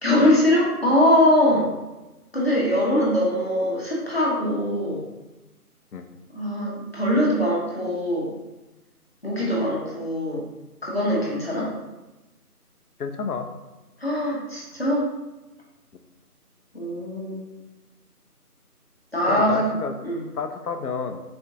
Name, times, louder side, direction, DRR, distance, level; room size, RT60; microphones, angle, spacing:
voice 1, 0.0-1.7 2.3-5.0 6.3-8.3 9.2-10.5 10.8-11.7 14.0-15.1 16.7-17.4 19.1-19.7 20.0-20.2, left 1 dB, 40° left, -5 dB, 0.9 m, -22 dB
voice 2, 13.0-13.5 19.3-19.9 20.3-21.2, left 5 dB, 70° left, 7 dB, 0.5 m, -30 dB
4.2 x 2.5 x 2.6 m, 1.1 s
figure-of-eight pair, 175°, 47 cm